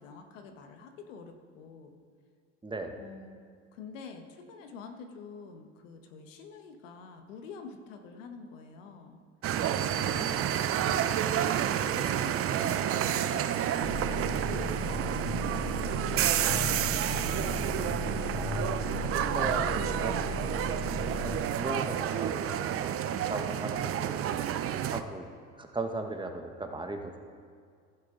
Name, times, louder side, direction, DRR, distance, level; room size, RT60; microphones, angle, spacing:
voice 1, 0.0-2.0 3.0-3.4 3.7-9.2 10.1-11.0 11.5-13.4 14.0-17.0, left 5 dB, 85° left, 5 dB, 1.3 m, -47 dB
voice 2, 2.6-2.9 18.3-20.2 20.4-20.8 21.2-24.3 24.9-25.3 25.6-27.2, right 2 dB, 15° right, 4 dB, 1.1 m, -37 dB
sound 1, 9.4-25.0, right 10 dB, 40° right, 0.6 m, -30 dB
sound 2, 13.8-21.4, left 4 dB, 35° left, 1.1 m, -36 dB
15.0 x 7.6 x 3.8 m, 2.2 s
supercardioid pair, 90°, 37 cm